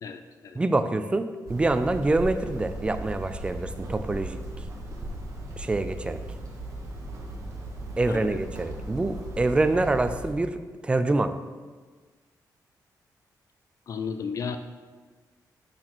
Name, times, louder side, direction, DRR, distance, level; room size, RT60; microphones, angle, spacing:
voice 1, 0.0-0.6 8.1-8.4 13.9-14.6, left 6 dB, 50° left, 8 dB, 0.4 m, -34 dB
voice 2, 0.6-4.4 5.6-6.2 8.0-10.6 10.8-11.3, right 2 dB, 15° right, 10 dB, 0.4 m, -25 dB
Hammer, 1.5-10.3, right 1 dB, 50° right, 1.3 m, -37 dB
6.4 x 6.1 x 4.3 m, 1.4 s
wide cardioid pair, 155°, 7 cm